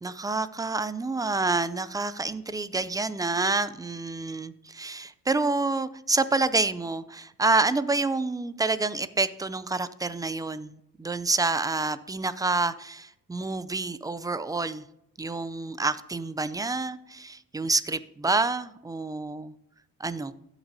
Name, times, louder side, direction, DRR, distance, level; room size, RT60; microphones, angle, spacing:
voice 1, 0.0-14.8 15.2-19.5 20.0-20.3, right 3 dB, 10° right, 15 dB, 0.4 m, -28 dB
16.5 x 6.0 x 2.8 m, 0.81 s
cardioid pair, 95°, 32 cm